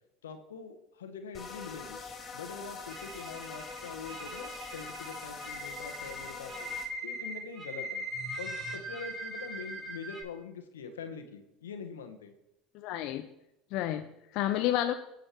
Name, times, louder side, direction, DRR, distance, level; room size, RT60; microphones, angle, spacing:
voice 1, 0.2-2.0 2.3-6.7 7.0-8.1 8.4-12.3, left 5 dB, 90° left, 7 dB, 1.4 m, -44 dB
sound 1, 1.3-6.9, left 5 dB, 35° left, 2.8 m, -44 dB
sound 2, 2.9-10.2, right 1 dB, 25° right, 5.3 m, -40 dB
voice 2, 12.7-13.3 13.7-14.9, left 13 dB, 60° left, 8 dB, 0.7 m, -30 dB
19.0 x 6.8 x 4.6 m, 0.88 s
hypercardioid pair, 80°, 0 cm